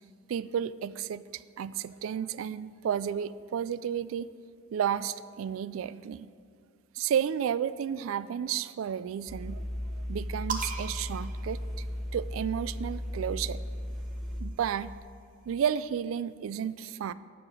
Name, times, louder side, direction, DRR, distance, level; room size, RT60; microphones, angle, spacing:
voice 1, 0.3-4.3 4.7-6.3 6.9-9.7 10.1-11.6 12.1-13.6 14.4-14.9 15.5-17.1, right 8 dB, 70° right, 16 dB, 0.3 m, -32 dB
sound 1, 9.3-14.4, equal, ahead, 1.2 m, -36 dB
sound 2, 10.5-12.3 13.4-15.1, right 5 dB, 40° right, 0.8 m, -41 dB
9.8 x 6.8 x 6.2 m, 2.2 s
head